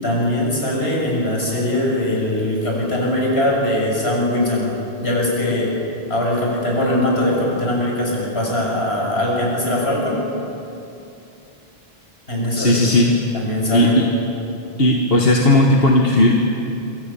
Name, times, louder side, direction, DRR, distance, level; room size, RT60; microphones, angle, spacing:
voice 1, 0.0-4.7 5.0-5.7 6.1-10.2 12.3-13.9, left 1 dB, 85° left, -2 dB, 7.4 m, -21 dB
voice 2, 12.6-13.1 13.7-14.0 14.8-16.3, left 1 dB, 65° left, 0 dB, 2.0 m, -15 dB
27.0 x 25.0 x 7.1 m, 2.7 s
omnidirectional pair, 1.0 m